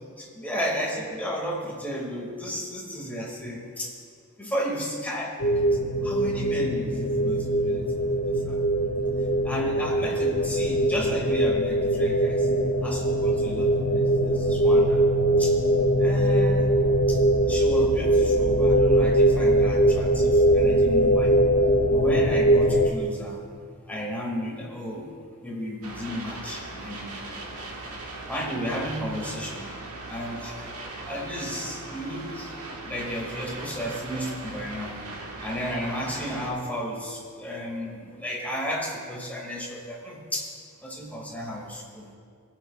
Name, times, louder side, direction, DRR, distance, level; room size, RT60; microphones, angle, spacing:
voice 1, 0.2-3.9 4.4-5.6 6.0-8.6 9.4-12.5 12.8-15.0 15.4-15.6 16.0-16.7 17.1-17.2 17.5-21.3 21.9-23.4 23.9-25.1 25.4-27.2 28.3-29.6 30.1-30.7 31.0-32.5 32.8-34.9 35.4-40.5 40.8-42.1, equal, 10° left, -3 dB, 2.4 m, -33 dB
sound 1, 5.4-22.9, right 1 dB, 55° left, 0.7 m, -22 dB
sound 2, 25.8-36.5, right 2 dB, 75° right, 1.7 m, -39 dB
24.0 x 9.0 x 2.5 m, 2.2 s
head